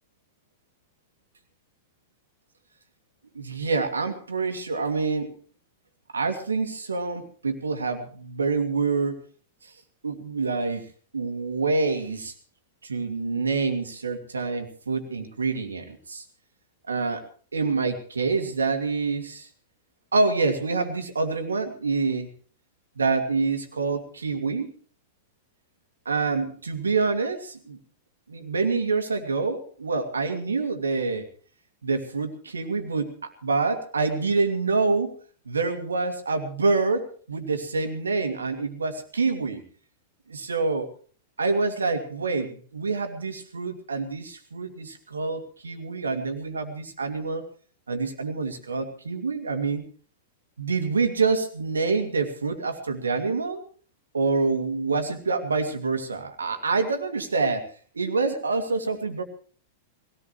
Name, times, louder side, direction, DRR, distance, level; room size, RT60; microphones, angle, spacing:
voice 1, 3.3-5.3 6.1-9.2 9.6-9.7 10.0-10.9 11.1-12.3 12.8-16.2 16.9-17.3 17.5-19.5 20.1-22.3 23.0-24.7 26.1-27.8 28.3-31.3 31.8-35.1 35.5-39.6 40.3-40.9 41.4-47.5 47.9-49.8 50.6-53.6 54.1-59.2, right 4 dB, 80° right, 7 dB, 2.5 m, -26 dB
21.5 x 18.0 x 3.3 m, 0.42 s
figure-of-eight pair, 100°, 0 cm